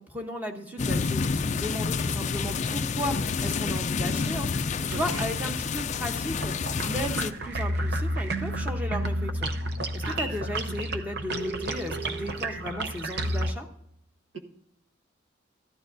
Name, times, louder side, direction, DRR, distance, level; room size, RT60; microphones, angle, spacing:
voice 1, 0.0-9.5 9.9-13.7, equal, 10° right, 4 dB, 1.0 m, -35 dB
sound 1, 0.8-7.3, left 4 dB, 35° left, 0.4 m, -28 dB
voice 2, 4.9-5.3 10.0-10.4 10.7-10.8 14.3-14.4, right 3 dB, 70° right, 5 dB, 1.2 m, -38 dB
sound 2, 6.4-13.5, right 1 dB, 55° right, 0.7 m, -31 dB
14.0 x 11.5 x 2.7 m, 0.76 s
head